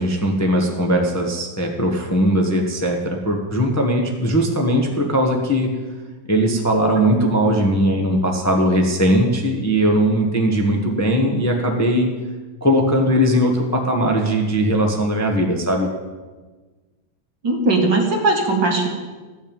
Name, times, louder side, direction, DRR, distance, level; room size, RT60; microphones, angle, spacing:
voice 1, 0.0-5.7 6.3-12.1 12.6-15.9, equal, 10° left, 1 dB, 1.1 m, -19 dB
voice 2, 17.4-18.9, right 2 dB, 65° right, 1 dB, 2.7 m, -18 dB
14.0 x 6.5 x 8.9 m, 1.3 s
omnidirectional pair, 2.2 m